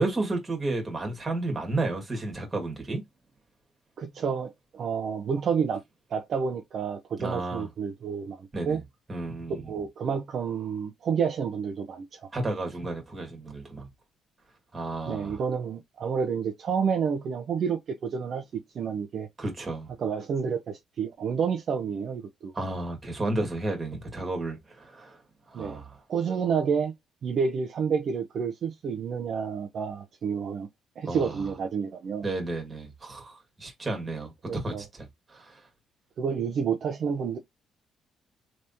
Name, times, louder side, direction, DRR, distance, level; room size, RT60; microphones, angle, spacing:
voice 1, 0.0-3.0 7.2-7.7 8.5-8.8 9.1-9.7 12.3-13.9 14.7-15.4 19.4-19.9 22.5-25.2 25.5-26.0 31.1-31.4 32.2-35.6, right 2 dB, 20° right, 1.8 m, -32 dB
voice 2, 4.0-5.8 6.1-8.8 9.5-12.3 15.1-18.4 18.7-19.3 20.0-22.5 25.5-25.8 26.1-26.9 27.2-30.7 31.0-32.2 34.5-34.8 36.2-37.4, right 6 dB, 55° right, 0.7 m, -29 dB
3.4 x 3.1 x 2.7 m
cardioid pair, 115°, 0 cm